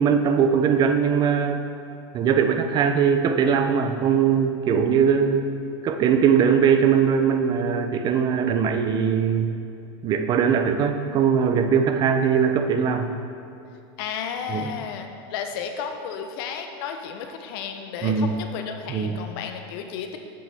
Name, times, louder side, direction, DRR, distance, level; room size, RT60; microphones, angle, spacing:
voice 1, 0.0-1.6 2.1-5.5 5.8-9.5 10.0-13.1 14.5-14.7 18.0-18.4 18.9-19.2, right 7 dB, 30° right, 6 dB, 0.5 m, -21 dB
voice 2, 14.0-20.2, left 7 dB, 60° left, 5 dB, 0.8 m, -33 dB
7.7 x 6.7 x 3.4 m, 2.5 s
supercardioid pair, 130°, 14 cm